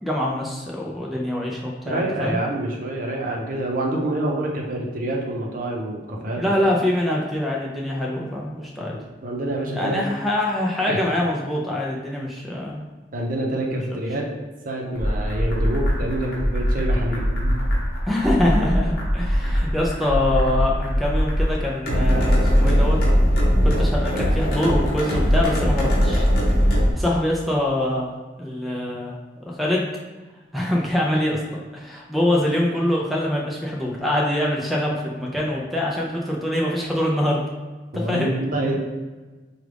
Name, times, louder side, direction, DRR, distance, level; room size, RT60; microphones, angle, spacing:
voice 1, 0.0-2.4 6.4-8.9 9.7-12.8 18.0-23.0 23.6-26.2 27.0-28.1 28.4-29.2 29.4-29.9 30.5-31.4 31.7-37.4 37.9-38.3, left 1 dB, ahead, -3 dB, 0.5 m, -24 dB
voice 2, 1.8-6.4 8.9-10.0 10.9-11.0 13.1-14.3 14.6-17.5 37.9-38.8, right 1 dB, 50° right, -1 dB, 0.7 m, -27 dB
sound 1, 15.0-26.9, equal, 55° left, 0.9 m, -21 dB
4.9 x 2.3 x 3.3 m, 1.3 s
head